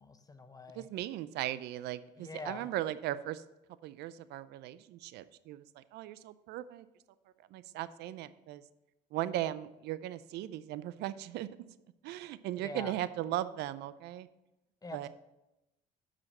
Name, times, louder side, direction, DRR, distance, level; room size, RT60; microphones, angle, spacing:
voice 1, 0.0-0.9 2.2-2.7 12.6-12.9 14.8-15.1, left 3 dB, 20° left, 9 dB, 0.8 m, -45 dB
voice 2, 0.7-3.4 3.8-6.9 7.5-8.6 9.1-11.5 12.0-14.3 14.9-15.1, right 13 dB, 75° right, 15 dB, 0.4 m, -38 dB
7.2 x 5.0 x 6.4 m, 0.94 s
supercardioid pair, 85°, 17 cm